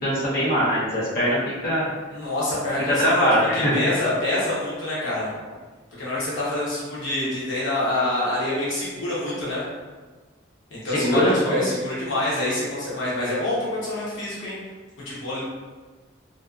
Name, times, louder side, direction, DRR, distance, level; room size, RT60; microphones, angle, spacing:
voice 1, 0.0-1.4 1.6-1.9 3.0-3.7 10.9-11.6, equal, 50° left, -9 dB, 0.8 m, -21 dB
voice 2, 2.1-3.3 3.5-5.3 6.0-9.6 10.7-14.6 15.0-15.4, left 1 dB, 85° left, -7 dB, 0.8 m, -26 dB
2.6 x 2.3 x 2.3 m, 1.4 s
head